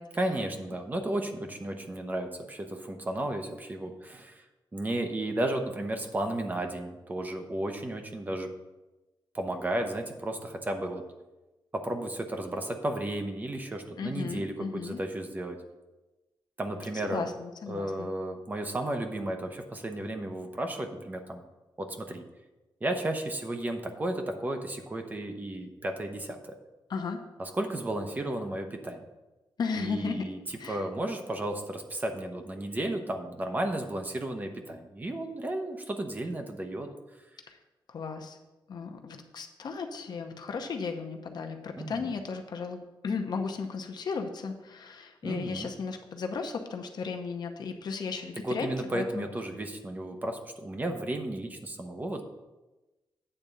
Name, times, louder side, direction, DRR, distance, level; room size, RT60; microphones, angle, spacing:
voice 1, 0.1-4.4 4.7-8.5 9.3-11.0 11.7-15.6 16.6-17.3 17.7-21.4 21.8-22.2 22.8-26.6 27.4-29.0 29.7-36.9 41.8-42.1 45.2-45.7 48.4-52.2, right 1 dB, 20° right, 4 dB, 0.7 m, -33 dB
voice 2, 14.0-15.0 17.0-18.1 26.9-27.2 29.6-30.2 30.6-30.8 37.9-38.4 38.7-49.2, left 5 dB, 55° left, 4 dB, 0.8 m, -35 dB
8.9 x 3.7 x 6.7 m, 1.1 s
wide cardioid pair, 170°, 9 cm